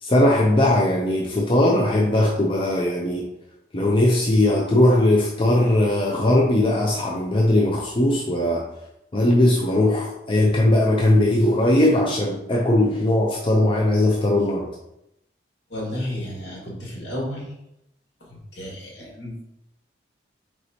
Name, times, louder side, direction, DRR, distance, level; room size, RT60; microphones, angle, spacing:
voice 1, 0.0-3.3 3.7-8.7 9.1-14.7, left 1 dB, 30° left, -1 dB, 0.5 m, -19 dB
voice 2, 15.7-17.5 18.2-19.4, left 1 dB, 75° left, -3 dB, 1.8 m, -32 dB
4.6 x 4.1 x 2.8 m, 0.83 s
head